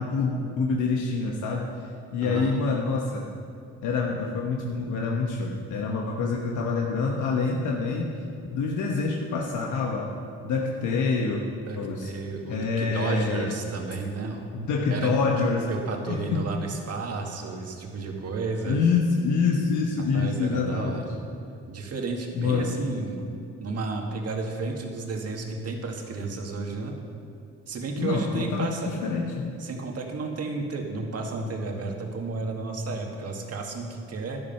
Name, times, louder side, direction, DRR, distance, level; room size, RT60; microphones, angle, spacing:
voice 1, 0.0-1.7 2.1-3.3 3.8-8.1 8.5-10.1 10.4-11.4 11.8-12.1 12.5-13.5 14.5-15.7 16.1-16.5 18.6-21.1 22.4-22.8 28.0-29.5, left 4 dB, 75° left, 0 dB, 1.2 m, -26 dB
voice 2, 2.2-2.6 11.7-14.4 14.9-15.1 15.7-18.8 20.1-21.2 21.7-23.2 23.6-26.9 27.7-29.1 29.6-34.4, right 3 dB, 55° right, 2 dB, 2.0 m, -32 dB
11.0 x 11.0 x 5.8 m, 2.4 s
cardioid pair, 90°, 30 cm